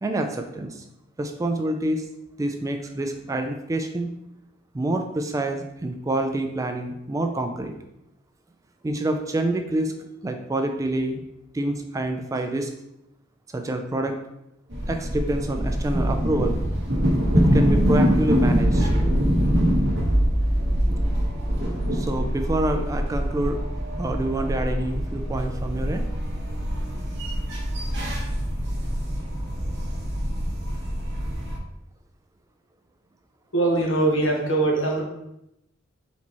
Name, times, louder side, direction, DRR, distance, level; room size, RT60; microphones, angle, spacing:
voice 1, 0.0-0.8 1.2-2.1 2.4-4.1 4.7-7.7 8.8-10.0 10.2-11.2 11.5-12.7 13.5-14.2 14.9-16.6 17.3-18.9 21.9-23.6 24.0-26.0, right 1 dB, 15° right, 5 dB, 0.3 m, -27 dB
sound 1, 14.7-31.6, equal, 65° right, 1.2 m, -24 dB
voice 2, 33.5-35.0, right 2 dB, 70° left, -1 dB, 1.2 m, -22 dB
4.3 x 4.1 x 3.0 m, 0.85 s
head